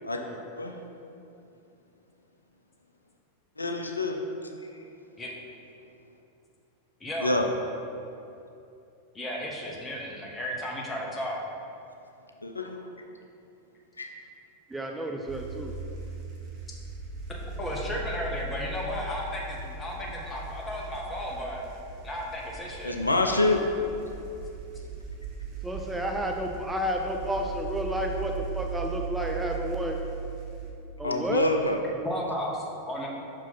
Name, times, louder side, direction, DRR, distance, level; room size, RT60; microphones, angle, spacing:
voice 1, 3.6-4.2 4.6-4.8 7.2-7.5 12.4-12.9 14.0-14.1 22.8-23.6 31.0-31.8, left 2 dB, 80° left, 3 dB, 0.4 m, -26 dB
voice 2, 7.0-7.4 9.1-11.4 17.6-21.6 22.0-23.0 32.0-33.1, equal, 15° left, -2 dB, 1.0 m, -34 dB
voice 3, 14.7-15.7 25.6-30.0 31.0-31.5, equal, 5° right, 1 dB, 0.4 m, -31 dB
sound 1, 15.3-30.7, right 4 dB, 40° right, 1.0 m, -38 dB
5.6 x 4.7 x 4.1 m, 2.7 s
figure-of-eight pair, 90°, 0 cm